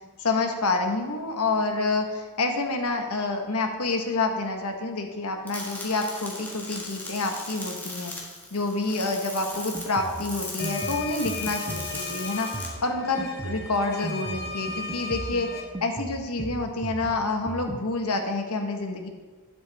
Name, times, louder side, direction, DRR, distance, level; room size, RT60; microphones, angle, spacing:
voice 1, 0.2-8.1 8.5-19.1, left 3 dB, 85° left, 4 dB, 1.2 m, -28 dB
sound 1, 5.5-12.7, left 2 dB, 10° left, 1.7 m, -38 dB
Drum kit, 9.5-17.8, right 2 dB, 20° right, 0.4 m, -38 dB
sound 2, 10.6-15.6, left 4 dB, 45° left, 1.3 m, -36 dB
11.0 x 7.4 x 3.4 m, 1.3 s
head